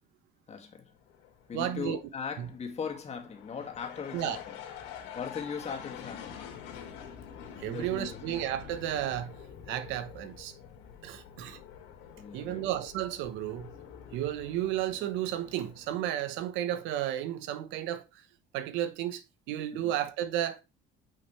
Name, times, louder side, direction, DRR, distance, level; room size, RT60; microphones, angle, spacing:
voice 1, 0.5-0.9 1.5-4.6 4.9-6.4 7.6-8.2 12.2-12.6 19.7-19.9, left 6 dB, 35° left, 2.2 m, -39 dB
sound 1, 0.9-16.9, left 8 dB, 85° left, 2.9 m, -47 dB
voice 2, 1.5-2.0 2.4-2.5 4.1-4.4 7.6-9.3 9.7-10.5 11.0-11.6 12.3-13.7 14.1-18.0 18.5-19.2 19.5-20.6, right 12 dB, 80° right, 1.0 m, -33 dB
9.1 x 5.8 x 3.2 m
cardioid pair, 110°, 19 cm